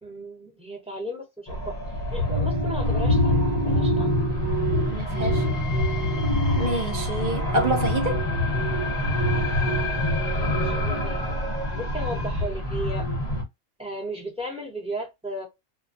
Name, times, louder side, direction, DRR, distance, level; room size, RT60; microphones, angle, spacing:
voice 1, 0.0-1.8 2.1-4.2 5.0-5.6 10.3-11.3 11.8-13.1 13.8-15.5, equal, 5° right, 0.8 m, -35 dB
sound 1, 1.5-13.4, left 1 dB, 40° left, 0.7 m, -25 dB
voice 2, 4.9-5.4 6.5-8.2, right 1 dB, 50° right, 0.7 m, -27 dB
2.2 x 2.2 x 2.6 m
omnidirectional pair, 1.3 m